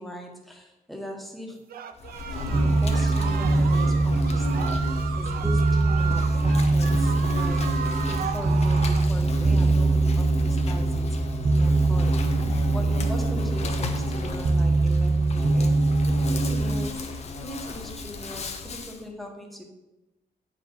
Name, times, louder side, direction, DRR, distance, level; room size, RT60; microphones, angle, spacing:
voice 1, 0.0-1.6 2.4-4.8 5.2-11.1 11.6-12.1 12.7-15.7 16.2-17.0 17.4-19.7, equal, ahead, 1 dB, 1.3 m, -39 dB
sound 1, 1.7-9.1, right 8 dB, 85° right, 0.6 m, -35 dB
Insect, 2.0-19.0, left 3 dB, 45° left, 0.9 m, -34 dB
sound 2, 2.5-16.9, right 3 dB, 30° right, 0.5 m, -23 dB
8.9 x 4.9 x 5.5 m, 1.0 s
wide cardioid pair, 155°, 15 cm